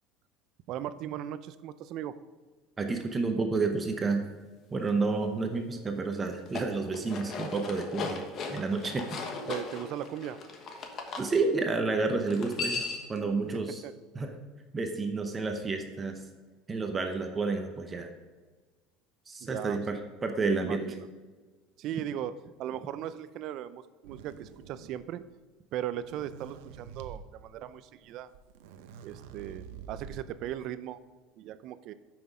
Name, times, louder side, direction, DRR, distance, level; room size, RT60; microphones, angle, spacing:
voice 1, 0.7-2.2 9.5-10.4 13.8-13.9 19.4-19.8 20.6-21.1 21.8-25.2 25.7-28.3 29.0-31.0 31.4-31.9, right 11 dB, 50° right, 14 dB, 0.5 m, -38 dB
voice 2, 2.8-4.2 4.7-8.2 8.5-9.2 11.2-13.8 14.1-14.4 14.7-16.2 16.7-18.1 19.3-20.9, right 3 dB, 20° right, 5 dB, 0.8 m, -30 dB
sound 1, 6.3-11.3 12.3-13.2, left 4 dB, 35° left, 1.2 m, -37 dB
sound 2, 24.0-25.2 25.9-27.2 28.1-28.2 28.3-30.4, right 7 dB, 85° right, 0.7 m, -47 dB
9.3 x 6.1 x 4.9 m, 1.4 s
cardioid pair, 145°, 0 cm